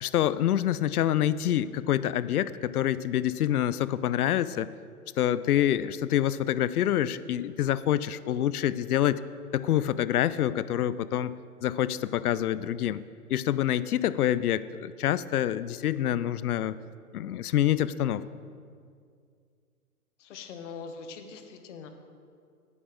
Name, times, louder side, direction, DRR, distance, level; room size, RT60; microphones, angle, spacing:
voice 1, 0.0-4.7 5.2-9.2 9.5-11.3 11.6-13.0 13.3-16.8 17.1-18.2, left 11 dB, 70° left, 16 dB, 0.6 m, -26 dB
voice 2, 20.2-21.9, left 5 dB, 50° left, 6 dB, 1.3 m, -42 dB
10.0 x 8.9 x 4.6 m, 2.2 s
hypercardioid pair, 125°, 46 cm